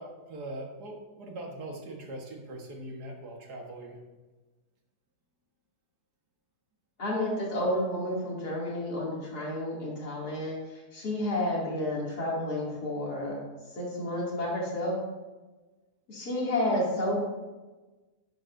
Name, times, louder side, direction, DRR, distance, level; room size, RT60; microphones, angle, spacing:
voice 1, 0.0-4.0, right 1 dB, 90° right, 1 dB, 2.1 m, -41 dB
voice 2, 7.0-13.4 13.8-15.0 16.1-17.1, left 1 dB, 80° left, -5 dB, 3.3 m, -31 dB
11.0 x 9.6 x 2.7 m, 1.2 s
omnidirectional pair, 1.7 m